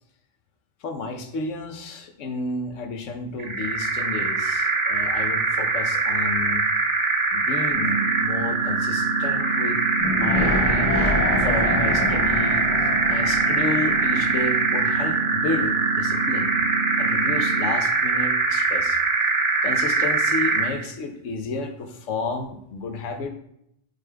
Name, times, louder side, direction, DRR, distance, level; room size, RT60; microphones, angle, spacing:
voice 1, 0.8-6.7 7.3-9.8 10.1-11.0 11.4-12.7 13.1-16.6 17.0-19.0 19.6-23.3, left 3 dB, 90° left, 6 dB, 1.1 m, -31 dB
sound 1, 3.4-20.8, right 4 dB, 35° right, 0.5 m, -23 dB
sound 2, 7.7-17.7, right 4 dB, 60° right, 2.0 m, -31 dB
sound 3, 10.0-15.1 15.4-15.5, left 2 dB, 70° left, 1.5 m, -27 dB
8.2 x 5.2 x 2.3 m, 0.75 s
omnidirectional pair, 1.2 m